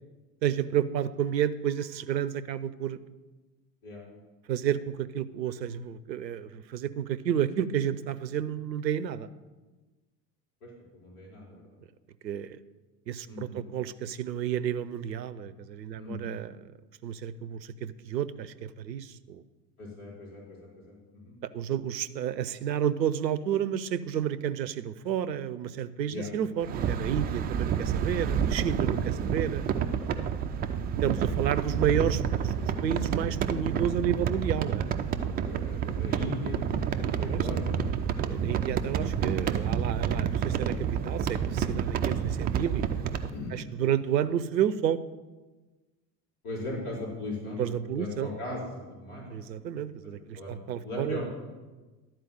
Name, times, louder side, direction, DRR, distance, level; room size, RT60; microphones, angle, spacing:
voice 1, 0.4-3.0 4.5-9.3 12.2-12.6 13.1-16.5 17.0-19.4 21.5-29.7 31.0-32.5 32.8-34.9 37.3-37.5 38.2-42.9 43.5-45.0 47.6-48.3 49.3-51.2, right 9 dB, 85° right, 15 dB, 0.6 m, -31 dB
voice 2, 10.9-11.6 13.3-13.6 15.9-16.3 19.8-21.3 26.1-26.3 35.5-37.8 43.3-43.5 46.4-49.4 50.3-51.3, left 1 dB, 60° left, -4 dB, 4.1 m, -38 dB
sound 1, 26.6-43.3, right 7 dB, 20° right, 0.4 m, -29 dB
11.5 x 4.5 x 7.6 m, 1.2 s
figure-of-eight pair, 75°, 50 cm